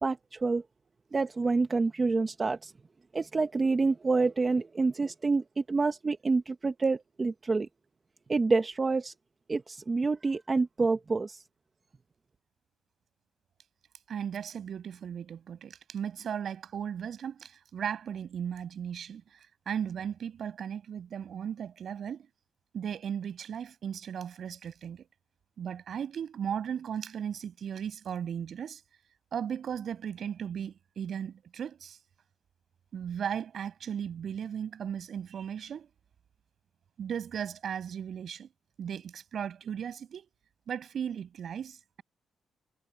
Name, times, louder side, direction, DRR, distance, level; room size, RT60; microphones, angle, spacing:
voice 1, 0.0-0.6 1.1-2.7 3.1-7.7 8.3-9.1 9.5-11.4, right 3 dB, 30° right, 1.5 m, -27 dB
voice 2, 14.1-19.4 19.6-22.3 22.7-25.1 25.6-28.8 29.3-32.0 32.9-35.9 37.0-38.5 38.8-40.3 40.7-42.0, right 8 dB, 60° right, 6.7 m, -36 dB
cardioid pair, 95°, 0 cm